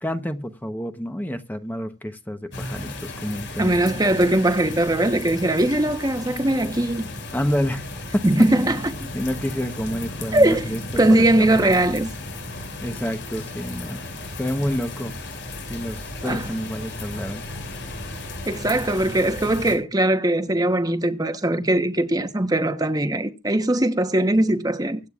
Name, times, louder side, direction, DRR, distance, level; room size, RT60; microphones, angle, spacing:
voice 1, 0.0-4.0 6.4-6.5 7.3-7.9 9.1-10.8 11.2-11.7 12.8-14.0 14.4-15.1 15.7-17.4, equal, 10° left, 1.0 m, -29 dB
sound 1, 2.5-19.8, left 2 dB, 75° left, 5.6 m, -34 dB
voice 2, 3.6-7.1 8.2-8.8 10.3-10.7 11.0-12.1 16.2-16.5 18.5-25.0, right 1 dB, 20° right, 1.1 m, -20 dB
24.0 x 8.8 x 2.5 m
head